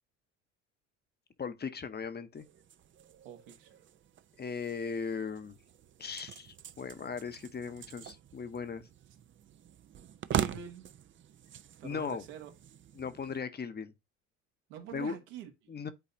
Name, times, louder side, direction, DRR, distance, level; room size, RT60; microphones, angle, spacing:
voice 1, 1.4-2.5 4.4-5.6 6.0-8.9 11.8-12.2 12.9-13.9 14.9-15.2 15.7-15.9, left 5 dB, 25° left, 0.9 m, -38 dB
sound 1, 2.4-13.4, right 10 dB, 30° right, 0.5 m, -42 dB
voice 2, 3.2-3.8 10.3-10.9 11.8-12.5 14.7-15.9, right 8 dB, 75° right, 1.7 m, -45 dB
10.5 x 4.0 x 2.7 m
hypercardioid pair, 65°, 38 cm